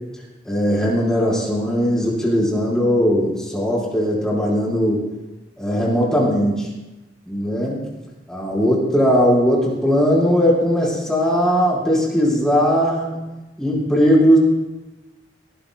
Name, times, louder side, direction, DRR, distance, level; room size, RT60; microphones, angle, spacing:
voice 1, 0.4-5.0 5.6-6.7 7.3-7.8 8.3-13.1 13.6-14.4, equal, 5° left, -5 dB, 4.5 m, -18 dB
20.0 x 17.5 x 2.3 m, 1.1 s
head